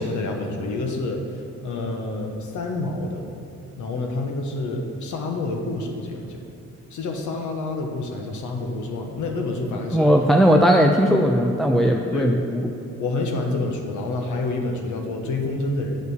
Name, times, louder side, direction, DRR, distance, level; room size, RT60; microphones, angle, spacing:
voice 1, 0.0-3.2 3.8-6.4 6.9-10.1 12.1-12.4 13.0-16.0, left 2 dB, 80° left, 2 dB, 1.2 m, -28 dB
voice 2, 9.9-12.6, equal, ahead, 2 dB, 0.5 m, -18 dB
8.1 x 6.8 x 6.5 m, 2.5 s
cardioid pair, 90°, 30 cm